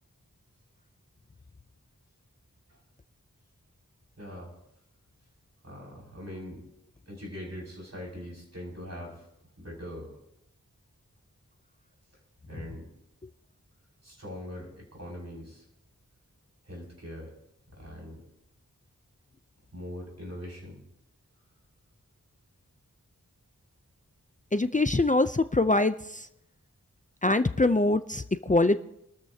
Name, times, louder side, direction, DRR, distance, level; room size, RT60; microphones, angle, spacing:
voice 1, 4.2-4.5 5.6-6.6 7.1-9.3 9.6-10.1 12.4-12.9 14.0-15.7 16.6-17.3 17.7-18.2 19.7-20.8, equal, 50° right, -2 dB, 6.1 m, -42 dB
voice 2, 24.5-26.2 27.2-28.8, left 2 dB, 25° left, 11 dB, 0.5 m, -24 dB
28.0 x 13.5 x 2.8 m, 0.79 s
wide cardioid pair, 45°, 33 cm